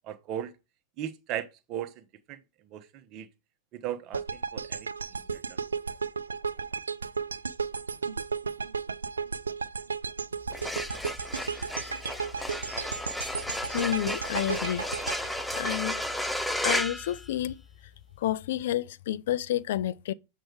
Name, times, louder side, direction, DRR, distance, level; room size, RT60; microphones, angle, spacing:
voice 1, 0.0-0.5 1.0-2.0 2.3-2.4 2.7-3.3 3.7-4.9 5.3-5.4, right 11 dB, 40° right, 1.0 m, -37 dB
sound 1, 4.1-16.3, right 5 dB, 75° right, 0.4 m, -34 dB
sound 2, 10.4-17.9, left 1 dB, ahead, 0.6 m, -33 dB
voice 2, 13.7-14.8 15.2-16.0 16.6-17.5 18.2-20.1, left 12 dB, 55° left, 0.4 m, -30 dB
7.7 x 4.7 x 4.8 m
figure-of-eight pair, 90°, 0 cm